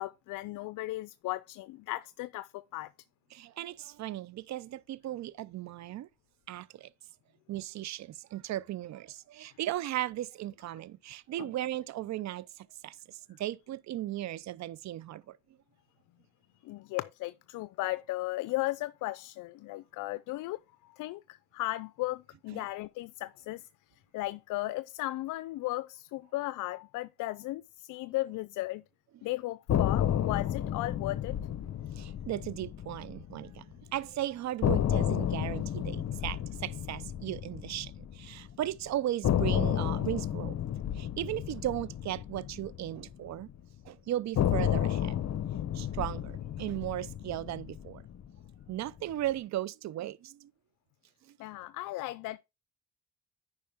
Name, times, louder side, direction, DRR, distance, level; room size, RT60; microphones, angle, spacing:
voice 1, 0.0-2.9 11.4-11.5 16.6-23.7 24.1-28.8 29.2-31.4 51.4-52.4, left 18 dB, 85° left, 0.5 m, -36 dB
voice 2, 3.3-6.1 6.5-6.9 7.5-15.4 22.5-22.7 32.0-33.6 33.9-40.6 40.9-43.5 43.8-45.2 45.7-48.0 48.7-50.5 51.3-51.4, right 13 dB, 65° right, 0.6 m, -36 dB
sound 1, 29.7-33.8 34.0-34.1 34.6-38.7 39.2-43.6 44.3-48.7, left 10 dB, 60° left, 1.0 m, -32 dB
9.7 x 5.2 x 3.5 m
cardioid pair, 90°, 30 cm